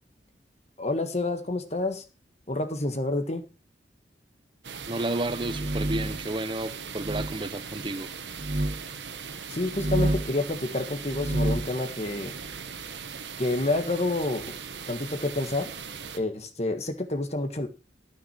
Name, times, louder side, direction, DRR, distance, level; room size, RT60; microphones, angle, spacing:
voice 1, 0.8-2.0 2.5-3.5 9.5-12.3 13.4-14.6 14.9-15.7 16.1-17.7, left 2 dB, 35° left, 1.5 m, -28 dB
sound 1, 4.6-16.2, right 6 dB, 75° right, 1.4 m, -39 dB
voice 2, 4.9-8.1, right 2 dB, 25° right, 0.7 m, -31 dB
sound 2, 5.3-6.3 7.0-7.3 8.3-8.8 9.6-10.4 11.0-11.7, right 1 dB, 45° right, 1.6 m, -28 dB
13.5 x 6.0 x 6.0 m
head